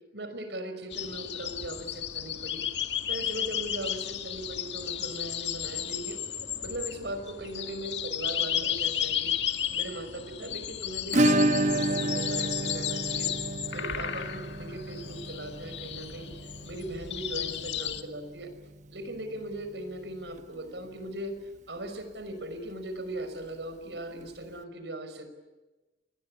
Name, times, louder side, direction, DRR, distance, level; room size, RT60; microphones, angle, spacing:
voice 1, 0.1-2.6 3.1-6.2 6.6-13.3 13.7-16.3 16.6-18.5 18.9-21.4 21.7-25.3, right 1 dB, 85° right, 9 dB, 5.4 m, -39 dB
sound 1, 0.9-18.0, left 10 dB, 90° left, 2.0 m, -34 dB
Acoustic guitar / Strum, 11.1-19.7 20.0-20.1 20.4-20.5 20.8-20.9 23.0-23.1 24.2-24.3, right 1 dB, 45° right, 1.2 m, -30 dB
28.0 x 21.0 x 9.9 m, 1.1 s
head